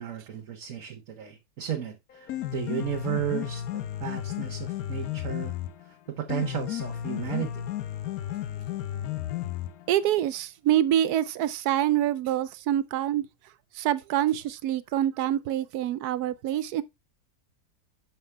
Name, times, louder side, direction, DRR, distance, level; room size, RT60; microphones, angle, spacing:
voice 1, 0.0-5.6 5.9-7.6, right 10 dB, 60° right, 1.4 m, -34 dB
Piano, 2.1-10.1, left 12 dB, 75° left, 1.1 m, -33 dB
voice 2, 9.9-13.2 13.8-16.8, right 12 dB, 85° right, 1.1 m, -26 dB
6.4 x 5.9 x 3.3 m
omnidirectional pair, 1.6 m